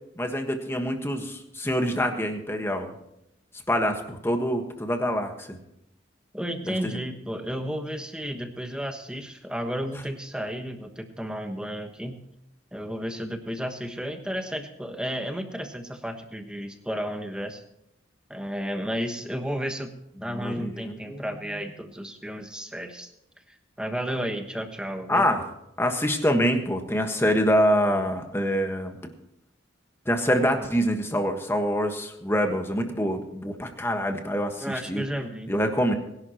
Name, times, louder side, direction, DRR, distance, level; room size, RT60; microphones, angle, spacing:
voice 1, 0.2-2.9 3.7-5.6 20.3-21.2 25.1-25.4 25.8-29.0 30.1-35.0 35.5-35.9, equal, 10° left, 5 dB, 1.4 m, -25 dB
voice 2, 6.3-12.2 12.7-17.6 18.3-19.9 20.2-23.1 23.8-25.3 34.6-35.5, equal, 5° right, 5 dB, 1.2 m, -32 dB
22.5 x 11.5 x 3.0 m, 0.80 s
head